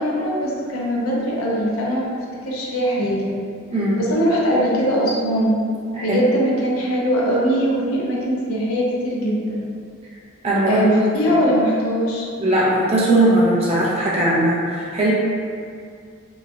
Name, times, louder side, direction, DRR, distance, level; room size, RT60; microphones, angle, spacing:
voice 1, 0.0-3.3 3.9-5.6 6.0-9.7 10.7-12.3, equal, 80° left, -4 dB, 0.5 m, -21 dB
voice 2, 3.7-4.1 5.9-6.2 10.4-10.8 12.4-15.1, right 1 dB, 25° right, -6 dB, 0.4 m, -19 dB
3.0 x 2.1 x 2.4 m, 2.2 s
head